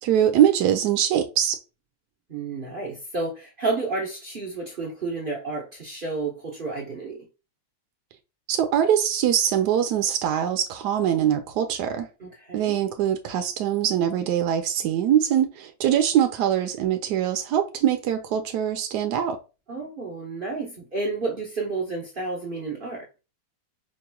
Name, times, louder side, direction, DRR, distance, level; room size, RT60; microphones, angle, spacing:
voice 1, 0.0-1.6 8.5-12.1 12.5-19.4, right 10 dB, 75° right, 1.0 m, -23 dB
voice 2, 2.3-7.2 12.2-12.7 19.7-23.1, right 3 dB, 45° right, 0.6 m, -31 dB
5.1 x 3.0 x 2.2 m
omnidirectional pair, 2.1 m